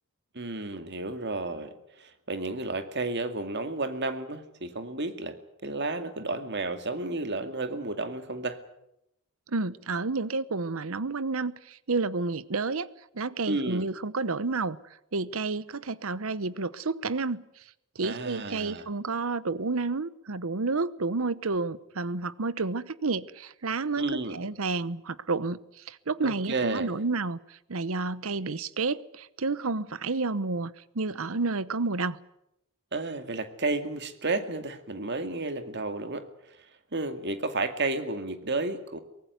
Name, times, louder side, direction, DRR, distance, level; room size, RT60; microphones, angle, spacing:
voice 1, 0.3-5.4 5.6-8.6 13.5-13.9 18.0-18.9 23.9-24.4 26.2-26.9 32.9-36.3 36.9-39.0, right 2 dB, 50° right, 2.3 m, -32 dB
voice 2, 9.5-12.9 13.1-14.8 15.1-17.4 18.0-24.1 24.3-27.4 27.7-32.2, right 3 dB, 65° right, 0.9 m, -30 dB
24.0 x 18.5 x 9.3 m
head